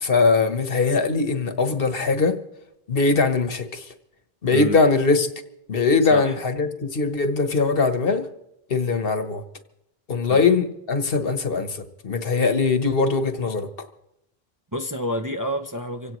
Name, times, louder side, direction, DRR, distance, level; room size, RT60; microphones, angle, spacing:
voice 1, 0.0-2.4 2.9-3.9 4.4-5.3 5.7-8.3 8.7-9.4 10.1-13.7, left 4 dB, 65° left, 1.3 m, -21 dB
voice 2, 4.5-4.8 6.1-6.4 10.3-10.5 14.7-16.2, equal, 20° right, 0.6 m, -29 dB
25.5 x 16.5 x 3.1 m
omnidirectional pair, 1.0 m